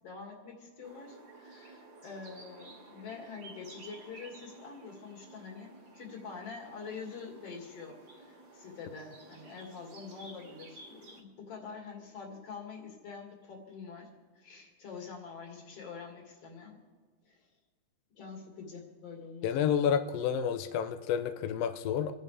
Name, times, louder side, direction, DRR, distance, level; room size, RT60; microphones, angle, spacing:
voice 1, 0.0-14.1 14.3-16.8 17.3-17.5 18.2-19.7, left 5 dB, 50° left, 0 dB, 3.4 m, -46 dB
sound 1, 0.8-11.2, right 2 dB, 55° right, 3.5 m, -53 dB
voice 2, 19.4-22.1, left 8 dB, 75° left, 9 dB, 1.5 m, -29 dB
27.5 x 10.5 x 3.4 m, 1.5 s
omnidirectional pair, 3.5 m